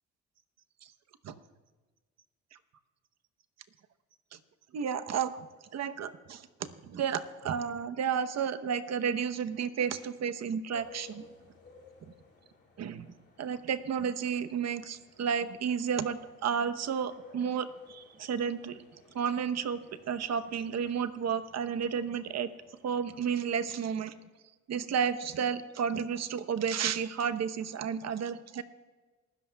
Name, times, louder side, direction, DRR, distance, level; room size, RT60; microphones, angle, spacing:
voice 1, 4.7-5.3 5.7-6.4 6.8-11.2 12.8-13.1 13.4-18.8 19.1-19.8 20.1-22.5 22.8-24.1 24.7-28.6, right 7 dB, 60° right, 10 dB, 0.9 m, -32 dB
sound 1, 10.7-24.1, left 4 dB, 35° left, 4.7 m, -57 dB
28.0 x 13.0 x 2.3 m, 1.3 s
cardioid pair, 90°, 30 cm